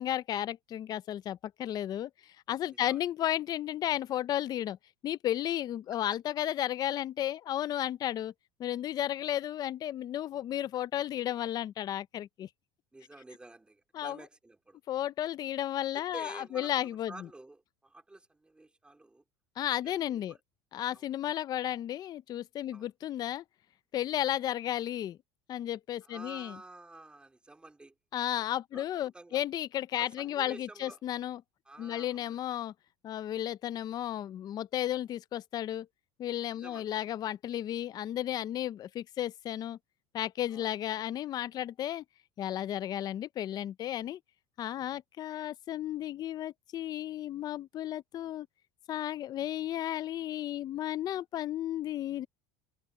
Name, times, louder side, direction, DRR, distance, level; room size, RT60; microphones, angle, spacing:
voice 1, 0.0-2.1 2.5-4.8 5.0-8.3 8.6-12.5 13.9-14.2 14.9-17.1 19.6-20.3 20.7-23.4 23.9-25.2 25.5-26.5 28.1-31.4 31.8-32.7 33.0-35.9 36.2-39.8 40.1-42.0 42.4-44.2 44.6-48.5 48.9-52.3, left 12 dB, 35° left, 0.5 m, -33 dB
voice 2, 2.7-3.0 12.9-14.8 15.9-19.2 19.8-20.4 20.9-21.1 22.7-22.9 24.3-24.4 26.0-28.0 28.3-28.4 28.7-28.9 29.1-29.4 29.9-31.0 31.6-32.4 36.5-36.9 40.5-40.7 50.6-50.7, right 2 dB, 10° right, 2.7 m, -50 dB
cardioid pair, 135°, 12 cm